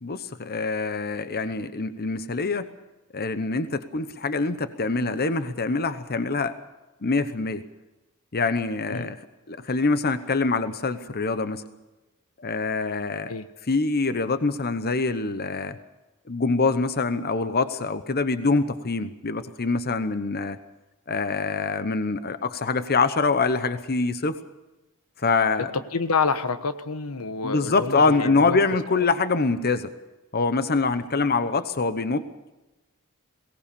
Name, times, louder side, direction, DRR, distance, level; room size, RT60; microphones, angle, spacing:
voice 1, 0.0-2.7 3.1-6.5 7.0-7.6 8.3-9.2 9.5-11.6 12.4-13.3 13.6-15.8 16.3-20.6 21.1-24.4 25.2-25.7 27.4-29.9 30.3-32.3, left 3 dB, 45° left, 12 dB, 0.9 m, -25 dB
voice 2, 25.9-28.6 29.0-29.1, left 4 dB, 80° left, 11 dB, 1.1 m, -28 dB
22.5 x 18.0 x 6.9 m, 1.1 s
head